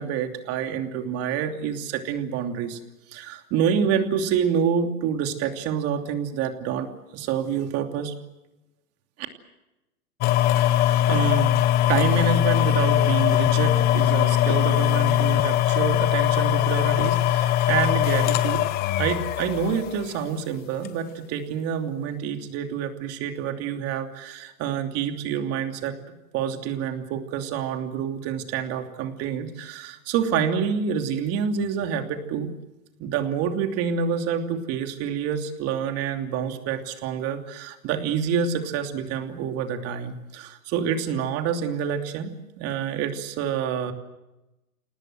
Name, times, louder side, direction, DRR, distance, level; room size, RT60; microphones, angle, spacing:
voice 1, 0.0-2.8 3.1-8.1 10.6-18.7 19.0-26.0 26.3-32.5 33.0-43.9, right 7 dB, 30° right, 5 dB, 2.9 m, -27 dB
sound 1, 10.2-20.2 20.8-20.9, left 12 dB, 20° left, 0.8 m, -21 dB
28.5 x 19.0 x 7.7 m, 0.98 s
hypercardioid pair, 135°, 45 cm